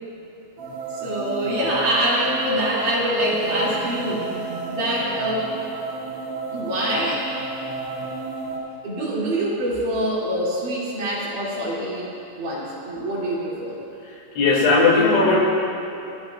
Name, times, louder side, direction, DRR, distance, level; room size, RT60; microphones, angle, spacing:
sound 1, 0.6-8.6, right 3 dB, 80° right, 5.3 m, -32 dB
voice 1, 1.0-4.2 4.7-5.5 6.5-7.2 8.8-12.1 12.4-13.7, right 1 dB, 50° right, -8 dB, 3.8 m, -24 dB
voice 2, 14.4-15.4, left 3 dB, 90° left, -3 dB, 5.0 m, -17 dB
30.0 x 12.5 x 2.5 m, 2.9 s
omnidirectional pair, 5.2 m